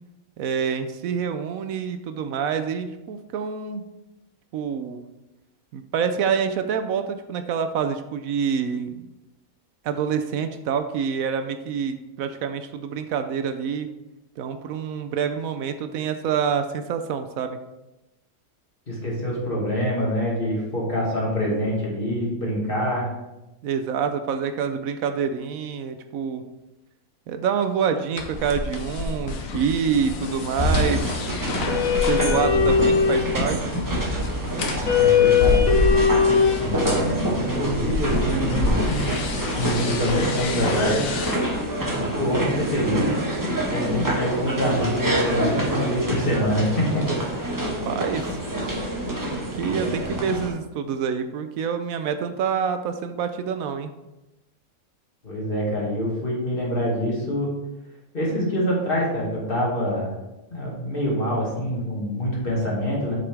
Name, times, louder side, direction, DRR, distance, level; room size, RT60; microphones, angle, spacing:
voice 1, 0.4-3.8 4.5-5.0 5.7-9.1 9.8-13.9 14.4-17.6 23.6-26.4 27.3-31.1 32.1-33.8 47.6-48.4 49.3-53.9, right 7 dB, 75° right, 8 dB, 1.0 m, -27 dB
voice 2, 18.9-23.1 32.5-32.7 35.0-35.8 36.6-39.1 39.6-41.1 42.1-43.1 43.7-47.0 49.7-50.1 55.2-57.5 58.1-60.1 60.5-63.2, equal, 40° left, -4 dB, 2.1 m, -25 dB
sound 1, 28.2-41.3, left 5 dB, 70° left, 1.3 m, -23 dB
sound 2, 30.6-50.5, right 1 dB, 15° right, 1.2 m, -27 dB
8.6 x 5.2 x 3.4 m, 0.97 s
omnidirectional pair, 1.5 m